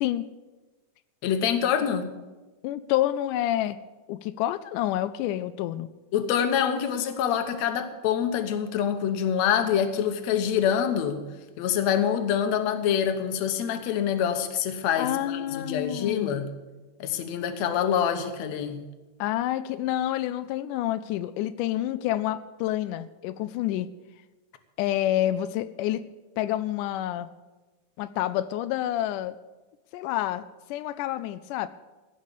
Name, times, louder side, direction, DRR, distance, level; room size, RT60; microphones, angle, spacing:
voice 1, 1.2-2.1 6.1-11.2 11.6-16.5 17.0-18.8, left 8 dB, 65° left, 8 dB, 2.2 m, -26 dB
voice 2, 2.6-3.8 4.1-5.9 15.0-16.4 19.2-23.9 24.8-26.0 26.4-27.3 28.0-29.4 29.9-31.7, left 13 dB, 90° left, 12 dB, 2.1 m, -28 dB
16.5 x 6.7 x 8.3 m, 1.2 s
omnidirectional pair, 3.6 m